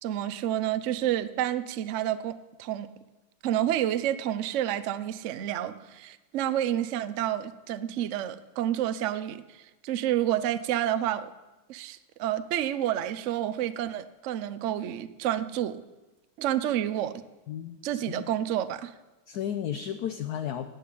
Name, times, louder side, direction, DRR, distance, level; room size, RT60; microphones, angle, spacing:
voice 1, 0.0-2.9 3.4-11.3 11.7-15.8 16.4-17.1 17.8-18.9, right 11 dB, 80° right, 13 dB, 0.6 m, -29 dB
voice 2, 17.5-18.3 19.3-20.7, left 9 dB, 65° left, 7 dB, 1.0 m, -34 dB
12.0 x 8.5 x 8.4 m, 1.1 s
omnidirectional pair, 2.2 m